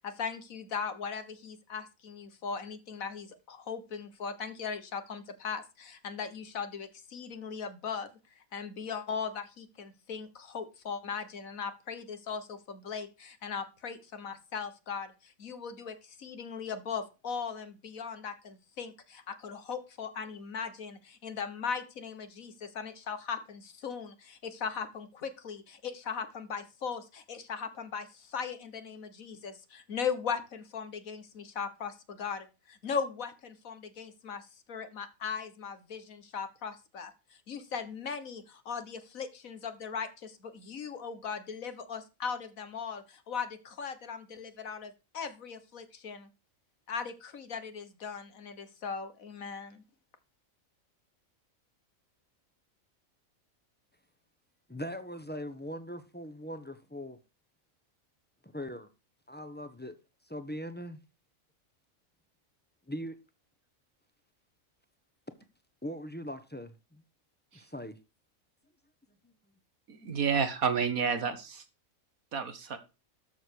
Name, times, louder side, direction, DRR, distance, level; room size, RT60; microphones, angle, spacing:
voice 1, 0.0-8.1 8.4-37.1 37.5-46.3 46.9-49.8, left 6 dB, 80° left, 1.8 m, -38 dB
voice 2, 54.7-57.2 58.4-58.9 59.3-59.9 60.3-61.0 62.9-63.2 65.8-67.0 67.5-68.0 69.2-69.3, equal, 10° left, 1.0 m, -40 dB
voice 3, 69.9-71.6 72.3-72.8, right 6 dB, 85° right, 2.0 m, -30 dB
13.0 x 6.8 x 4.7 m
omnidirectional pair, 1.4 m